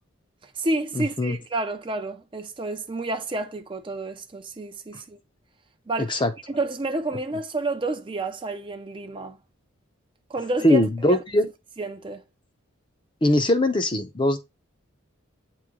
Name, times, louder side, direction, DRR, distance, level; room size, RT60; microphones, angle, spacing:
voice 1, 0.4-5.2 5.9-6.2 6.5-9.4 10.3-10.8 11.1-11.2 11.8-12.2, right 2 dB, 25° right, 0.5 m, -30 dB
voice 2, 1.0-1.4 6.0-6.3 10.6-11.5 13.2-14.4, left 1 dB, 25° left, 0.6 m, -21 dB
8.4 x 3.0 x 3.6 m
head